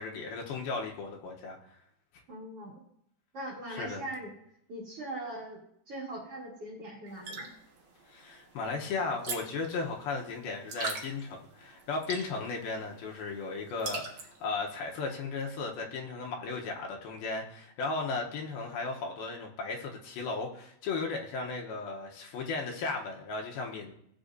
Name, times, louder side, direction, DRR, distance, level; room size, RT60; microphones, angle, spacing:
voice 1, 0.0-1.6 3.7-4.0 8.1-23.9, left 4 dB, 75° left, 0 dB, 2.6 m, -35 dB
voice 2, 2.3-2.8 3.3-4.3 4.7-5.6 5.9-7.5, right 1 dB, 45° right, -5 dB, 2.1 m, -40 dB
sound 1, 7.1-14.5, right 3 dB, 90° right, 1.1 m, -43 dB
16.5 x 7.7 x 2.6 m, 0.73 s
omnidirectional pair, 4.6 m